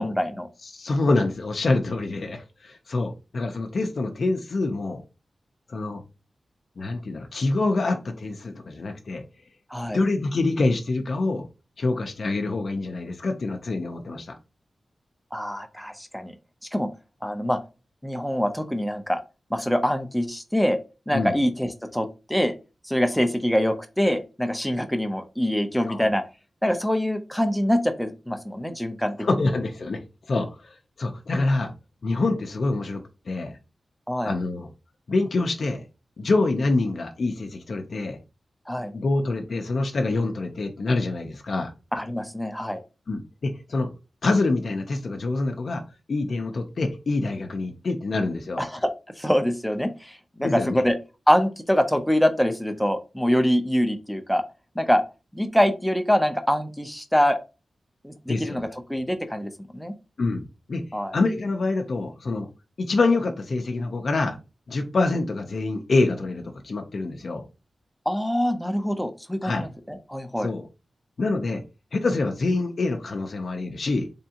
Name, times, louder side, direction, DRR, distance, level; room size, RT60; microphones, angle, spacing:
voice 1, 0.0-0.5 9.7-10.0 15.3-16.3 16.7-16.9 17.2-17.6 18.0-19.2 19.5-20.8 21.1-22.5 22.9-26.2 26.6-29.2 34.1-34.4 38.7-38.9 41.9-42.8 48.6-48.9 49.2-51.0 51.3-54.4 54.8-55.0 55.3-57.4 58.0-59.9 60.9-61.2 68.1-70.5, equal, 5° left, 0.6 m, -24 dB
voice 2, 0.6-5.0 5.7-6.0 6.8-9.2 9.9-11.5 11.8-14.3 21.1-21.3 25.9-26.1 29.2-30.0 30.3-31.7 32.0-33.6 34.2-34.7 35.1-35.8 36.2-38.2 38.9-41.7 43.1-43.9 44.2-45.8 46.1-48.7 50.4-50.8 58.3-58.6 60.2-60.8 61.1-62.5 62.8-64.4 64.7-67.4 69.4-69.7 70.4-70.7 71.2-71.6 71.9-74.1, left 3 dB, 60° left, 0.6 m, -26 dB
3.6 x 3.4 x 2.8 m
wide cardioid pair, 90°, 0 cm